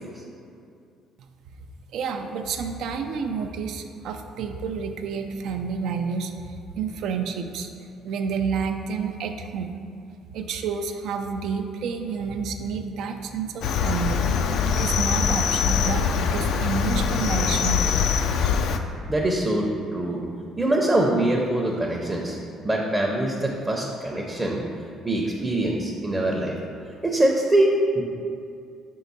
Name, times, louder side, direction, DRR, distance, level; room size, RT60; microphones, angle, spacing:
voice 1, 1.9-7.7 8.0-9.7 10.3-14.2 14.8-17.9, right 5 dB, 70° right, 6 dB, 0.4 m, -29 dB
Cricket, 13.6-18.8, left 6 dB, 70° left, 0.3 m, -23 dB
voice 2, 18.9-20.2 20.6-22.4 22.6-24.6 25.0-26.6 27.0-28.0, right 1 dB, 15° right, -1 dB, 0.6 m, -23 dB
5.1 x 4.6 x 4.1 m, 2.5 s
cardioid pair, 120°, 0 cm